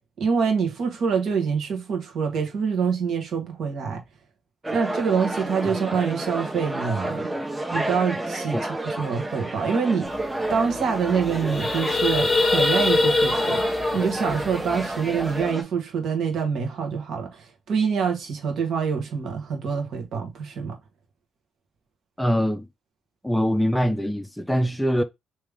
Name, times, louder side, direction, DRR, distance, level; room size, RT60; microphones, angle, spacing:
voice 1, 0.2-4.0 4.7-7.3 7.7-10.1 10.5-13.7 13.9-20.8, right 6 dB, 65° right, 1.4 m, -25 dB
sound 1, 4.6-15.6, right 1 dB, 15° right, 0.8 m, -31 dB
sound 2, 10.2-10.3 10.5-10.7 11.1-15.4, left 3 dB, 30° left, 0.9 m, -24 dB
voice 2, 22.2-22.7 23.2-25.0, equal, 5° left, 0.4 m, -23 dB
3.5 x 3.1 x 3.4 m
cardioid pair, 90°, 0 cm